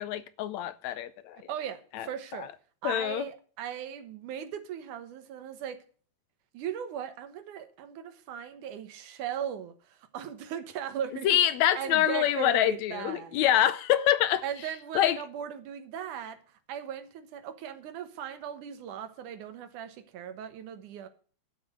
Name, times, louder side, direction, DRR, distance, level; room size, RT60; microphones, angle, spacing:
voice 1, 0.0-1.4 1.9-2.1 2.4-2.5 2.8-3.3 11.2-14.4 15.0-15.2, left 12 dB, 75° left, 1.8 m, -25 dB
voice 2, 1.5-2.5 2.8-5.8 6.5-11.3 11.7-13.4 14.4-16.4 16.7-21.1, right 9 dB, 80° right, 2.7 m, -38 dB
12.0 x 7.9 x 6.5 m
omnidirectional pair, 3.5 m